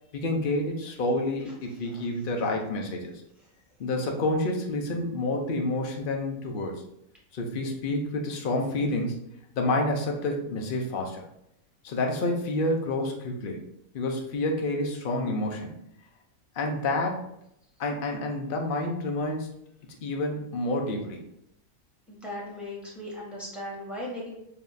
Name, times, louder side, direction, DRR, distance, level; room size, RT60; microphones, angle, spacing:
voice 1, 0.1-3.2 3.8-6.8 7.3-9.2 9.5-11.2 11.8-13.6 13.9-15.8 16.6-17.3 17.8-19.5 20.0-21.2, left 2 dB, 50° left, 2 dB, 0.7 m, -29 dB
voice 2, 22.1-24.4, left 1 dB, ahead, -5 dB, 1.4 m, -37 dB
6.8 x 2.8 x 2.7 m, 0.78 s
omnidirectional pair, 1.5 m